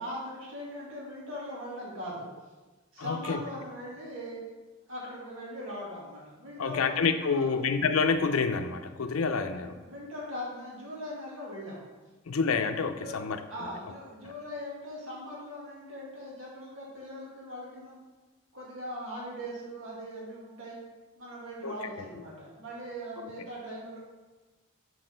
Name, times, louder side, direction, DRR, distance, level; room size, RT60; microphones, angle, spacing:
voice 1, 0.0-2.3 2.9-4.4 4.9-7.5 9.5-11.8 12.9-13.2 13.5-17.9 18.5-20.7 21.2-24.0, equal, 70° right, -5 dB, 2.1 m, -40 dB
voice 2, 3.0-3.4 6.6-9.8 12.3-13.4 14.2-14.3 21.6-21.7 23.4-23.5, left 5 dB, 90° left, 8 dB, 0.6 m, -28 dB
6.0 x 4.9 x 5.0 m, 1.2 s
head